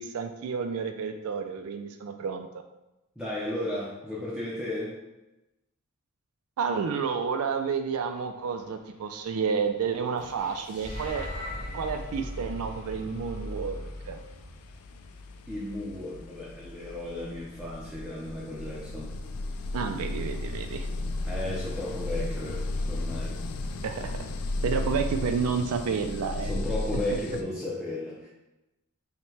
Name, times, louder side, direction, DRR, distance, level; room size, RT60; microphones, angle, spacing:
voice 1, 0.0-2.5 6.6-11.3 11.7-14.2 19.7-20.9 23.8-24.2 24.6-26.6, right 6 dB, 75° right, 6 dB, 0.3 m, -30 dB
voice 2, 3.2-5.0 15.5-19.1 21.3-23.4 26.4-28.3, left 1 dB, 5° right, -6 dB, 0.5 m, -34 dB
sound 1, 9.6-9.8 10.1-27.4, left 2 dB, 85° left, 0.4 m, -36 dB
sound 2, 10.6-15.0, left 1 dB, 70° left, 1.1 m, -38 dB
5.6 x 2.2 x 3.2 m, 0.99 s
head